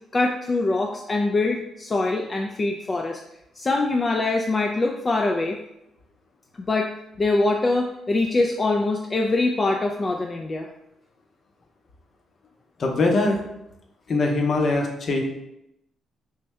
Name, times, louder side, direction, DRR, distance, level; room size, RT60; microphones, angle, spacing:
voice 1, 0.1-3.2 3.6-5.6 6.6-6.9 7.2-10.7, left 2 dB, 30° left, 2 dB, 0.3 m, -23 dB
voice 2, 12.8-13.4 14.1-15.2, left 2 dB, 50° left, 2 dB, 0.7 m, -22 dB
3.4 x 2.6 x 3.2 m, 0.82 s
cardioid pair, 90°, 0 cm